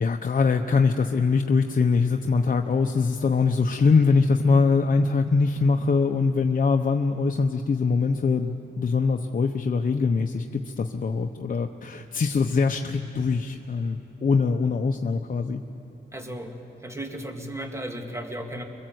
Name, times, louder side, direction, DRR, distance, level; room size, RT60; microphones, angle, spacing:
voice 1, 0.0-15.6, left 4 dB, 45° left, 4 dB, 0.9 m, -23 dB
voice 2, 16.1-16.6 16.8-18.6, right 1 dB, 15° right, 3 dB, 2.3 m, -35 dB
24.5 x 23.0 x 7.9 m, 2.9 s
wide cardioid pair, 115°, 19 cm